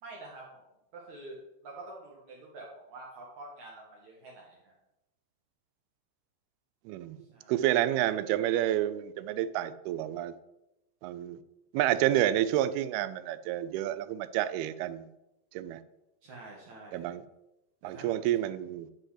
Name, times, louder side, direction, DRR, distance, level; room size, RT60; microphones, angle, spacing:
voice 1, 0.0-0.6 0.9-4.7 7.2-7.6 16.2-17.1 17.8-18.1, right 2 dB, 55° right, -3 dB, 2.5 m, -47 dB
voice 2, 6.9-7.2 7.5-10.3 11.0-11.4 11.7-15.1 15.5-15.8 16.9-17.2 17.8-18.9, right 12 dB, 90° right, 14 dB, 2.5 m, -29 dB
10.5 x 5.4 x 5.7 m, 0.91 s
omnidirectional pair, 4.4 m